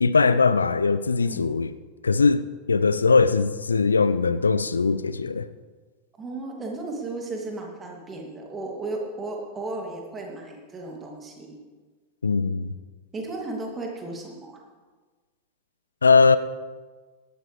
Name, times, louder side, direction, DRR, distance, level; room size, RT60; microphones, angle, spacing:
voice 1, 0.0-1.7 2.0-5.5 12.2-12.7 16.0-16.4, left 4 dB, 75° left, 0.5 m, -20 dB
voice 2, 6.2-11.6 13.1-14.6, right 2 dB, 20° right, 2.5 m, -34 dB
17.0 x 12.0 x 3.3 m
figure-of-eight pair, 90°, 0 cm